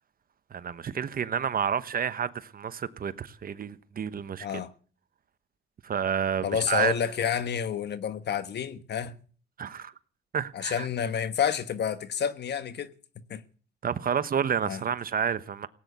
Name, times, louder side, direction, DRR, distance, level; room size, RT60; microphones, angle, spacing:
voice 1, 0.5-4.6 5.8-6.9 9.6-9.9 10.3-10.9 13.8-15.7, right 7 dB, 45° right, 1.1 m, -30 dB
voice 2, 4.4-4.7 6.4-9.2 10.5-12.9 13.3-13.4 14.6-14.8, left 8 dB, 60° left, 1.4 m, -29 dB
17.5 x 9.4 x 8.2 m
cardioid pair, 90°, 20 cm